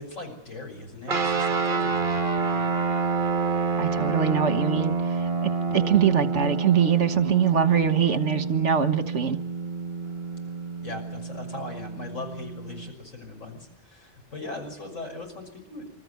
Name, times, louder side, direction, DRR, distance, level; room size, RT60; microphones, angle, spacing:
voice 1, 0.0-2.7 10.8-15.9, left 2 dB, 85° left, 2 dB, 6.4 m, -39 dB
sound 1, 1.1-12.9, right 4 dB, 45° right, 1.4 m, -28 dB
voice 2, 3.8-4.9 5.4-9.4, right 8 dB, 70° right, 9 dB, 1.5 m, -23 dB
29.5 x 14.5 x 9.5 m, 0.86 s
omnidirectional pair, 1.3 m